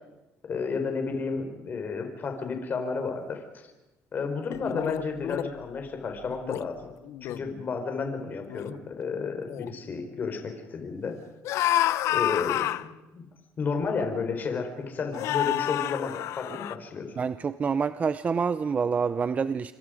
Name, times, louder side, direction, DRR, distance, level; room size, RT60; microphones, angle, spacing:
voice 1, 0.4-3.7 4.1-6.9 7.3-11.2 12.1-13.2 13.6-17.2, left 4 dB, 35° left, 5 dB, 4.4 m, -32 dB
sound 1, 4.5-5.5 6.3-6.6 7.0-7.4 8.1-8.2 8.5-8.8 9.4-9.7 11.4-12.9 13.9-14.0 15.1-16.7, left 13 dB, 70° left, 0.8 m, -29 dB
voice 2, 17.2-19.7, right 5 dB, 30° right, 13 dB, 0.7 m, -27 dB
28.0 x 25.5 x 5.1 m, 1.0 s
cardioid pair, 130°, 5 cm